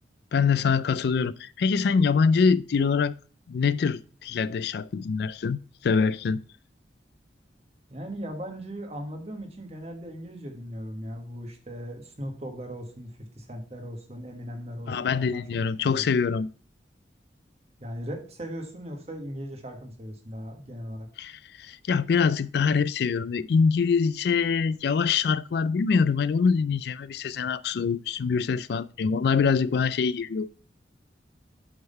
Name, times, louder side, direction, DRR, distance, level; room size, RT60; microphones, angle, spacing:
voice 1, 0.3-3.1 3.5-6.4 14.9-16.5 21.2-30.5, left 5 dB, 60° left, 0.3 m, -24 dB
voice 2, 7.9-15.4 15.8-16.1 17.8-21.1, equal, 35° right, 1.4 m, -38 dB
7.8 x 3.7 x 5.4 m
head